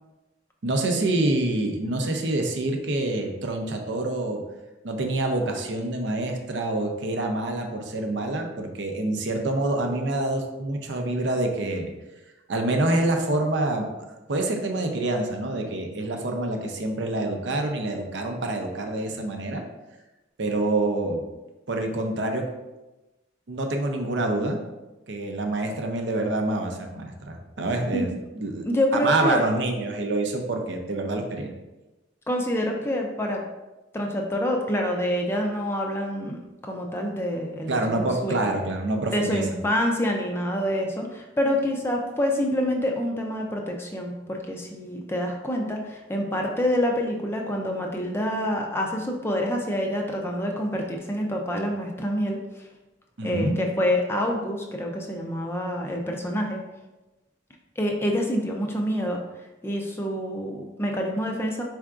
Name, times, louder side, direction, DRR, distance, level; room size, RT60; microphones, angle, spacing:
voice 1, 0.6-4.4 4.8-11.9 12.5-13.9 14.3-19.6 20.4-21.2 21.7-22.4 23.5-24.6 25.1-28.1 28.4-28.6 28.9-31.5 37.7-39.6 53.2-53.6, right 2 dB, 70° right, 3 dB, 0.6 m, -26 dB
voice 2, 28.6-29.4 32.3-33.4 33.9-38.4 39.1-52.7 53.2-56.6 57.8-59.2 59.6-61.6, equal, 10° left, 1 dB, 0.3 m, -27 dB
4.6 x 3.5 x 2.4 m, 1.1 s
head